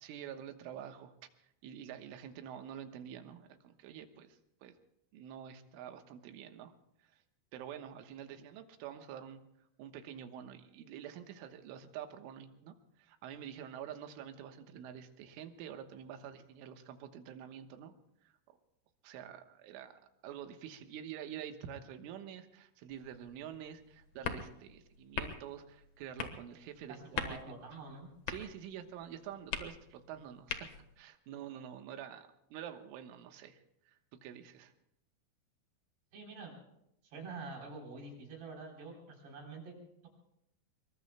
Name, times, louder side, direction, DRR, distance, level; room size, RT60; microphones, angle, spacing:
voice 1, 0.0-1.2 1.4-4.8 5.1-6.7 7.0-7.2 7.5-9.5 9.8-17.9 18.2-18.3 19.0-27.4 28.3-30.7 31.0-34.7, right 9 dB, 85° right, 7 dB, 3.6 m, -47 dB
sound 1, 22.9-31.0, left 7 dB, 85° left, 1.6 m, -44 dB
voice 2, 26.9-28.1 36.1-36.5 37.0-39.7, right 3 dB, 60° right, 0 dB, 5.7 m, -47 dB
24.5 x 22.5 x 2.2 m, 0.79 s
omnidirectional pair, 5.6 m